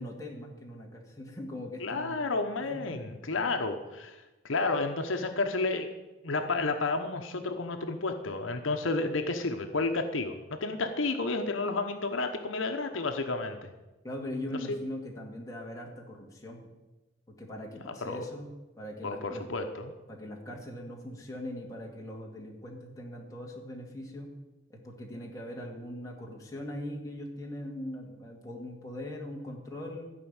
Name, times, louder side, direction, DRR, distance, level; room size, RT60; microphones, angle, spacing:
voice 1, 0.0-2.2 2.7-3.0 14.0-16.6 17.4-19.4 20.1-24.3 24.7-30.1, left 1 dB, 15° left, -1 dB, 2.1 m, -41 dB
voice 2, 1.8-5.9 6.2-13.7 14.5-14.8 18.0-18.3 19.0-19.9, left 3 dB, 80° left, 6 dB, 1.0 m, -31 dB
15.0 x 5.3 x 8.8 m, 1.1 s
head